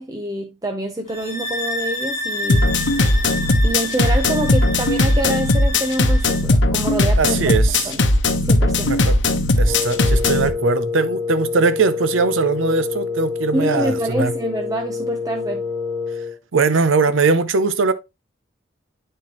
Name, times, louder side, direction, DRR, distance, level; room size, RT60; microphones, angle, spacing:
voice 1, 0.0-2.6 3.6-7.6 7.8-8.1 8.4-9.0 13.5-15.6, right 1 dB, 20° right, 0.6 m, -26 dB
sound 1, 1.1-6.5, left 1 dB, 40° left, 1.7 m, -30 dB
sound 2, 2.5-10.5, left 2 dB, 70° left, 0.9 m, -17 dB
voice 2, 7.2-7.9 8.9-9.1 9.6-14.3 16.5-17.9, right 4 dB, 85° right, 0.6 m, -20 dB
Wind instrument woodwind instrument, 9.7-16.4, left 5 dB, 45° right, 2.1 m, -27 dB
9.3 x 4.5 x 2.9 m
head